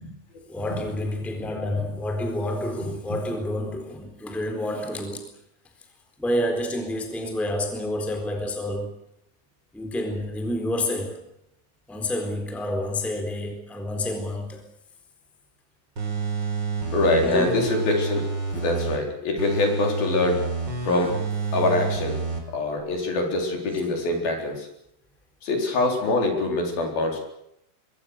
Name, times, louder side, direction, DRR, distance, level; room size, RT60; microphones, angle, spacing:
voice 1, 0.5-5.4 6.2-9.0 9.7-11.3 11.9-14.7 17.2-17.8, left 1 dB, ahead, 3.4 m, -29 dB
sound 1, 16.0-19.0 19.4-22.4 22.8-22.9, right 4 dB, 25° right, 4.9 m, -29 dB
voice 2, 16.9-18.2 18.5-20.4 20.8-21.2 21.5-22.2 22.5-24.7 25.4-27.2, left 2 dB, 60° left, 5.8 m, -24 dB
26.0 x 23.0 x 6.6 m
omnidirectional pair, 4.8 m